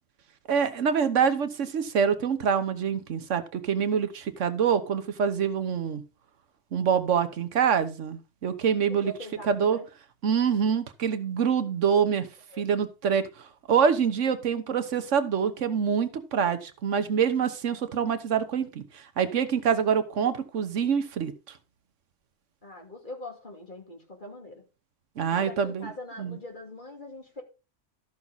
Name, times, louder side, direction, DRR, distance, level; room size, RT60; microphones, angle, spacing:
voice 1, 0.5-6.0 6.7-9.1 9.4-9.8 10.2-12.3 12.6-21.3 25.2-25.9 26.2-26.4, right 7 dB, 90° right, 1.4 m, -25 dB
voice 2, 8.9-9.9 12.5-12.6 22.6-24.6 25.3-27.4, left 1 dB, 40° left, 2.8 m, -42 dB
13.5 x 6.0 x 4.1 m
omnidirectional pair, 1.2 m